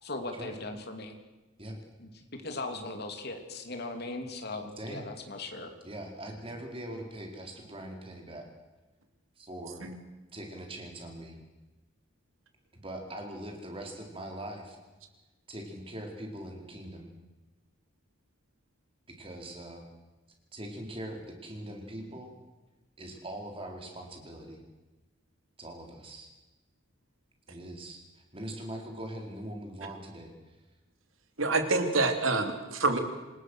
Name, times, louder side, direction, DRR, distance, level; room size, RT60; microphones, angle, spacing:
voice 1, 0.0-1.1 2.0-2.1 2.4-5.7, left 2 dB, 55° left, 5 dB, 3.2 m, -38 dB
voice 2, 5.8-8.5 9.4-9.9 10.3-11.4 12.8-14.8 15.5-17.1 19.1-19.8 20.5-22.3 23.0-24.6 25.6-26.3 27.5-28.0 28.3-30.3, right 1 dB, 25° right, 2 dB, 4.4 m, -41 dB
voice 3, 31.4-33.0, right 3 dB, 85° right, 6 dB, 3.3 m, -26 dB
28.0 x 20.0 x 6.5 m, 1.2 s
head